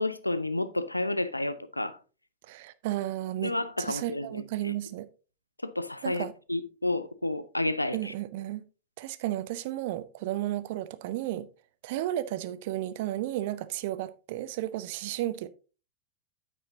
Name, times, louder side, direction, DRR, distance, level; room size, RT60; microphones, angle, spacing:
voice 1, 0.0-2.0 3.4-4.7 5.6-8.1, left 2 dB, 85° left, 0.7 m, -31 dB
voice 2, 2.4-5.1 6.0-6.3 7.9-8.6 9.0-11.5 11.8-15.5, right 14 dB, 50° right, 0.7 m, -33 dB
9.1 x 8.8 x 2.7 m
figure-of-eight pair, 90°, 0 cm